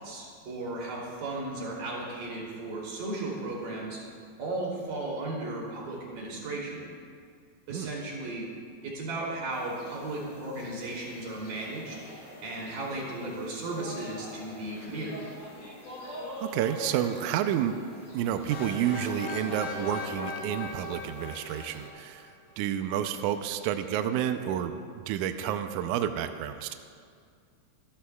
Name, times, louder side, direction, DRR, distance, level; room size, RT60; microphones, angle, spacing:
voice 1, 0.0-4.0 4.4-6.9 7.7-8.5 8.8-12.0 12.4-15.3, right 2 dB, 65° right, -4 dB, 4.6 m, -35 dB
sound 1, 9.5-21.9, left 1 dB, 35° left, 4.1 m, -45 dB
voice 2, 16.4-17.8 18.1-26.7, right 10 dB, 85° right, 8 dB, 1.7 m, -30 dB
sound 2, 18.5-22.3, left 2 dB, 70° left, 4.0 m, -38 dB
24.5 x 13.0 x 2.4 m, 2.1 s
omnidirectional pair, 4.1 m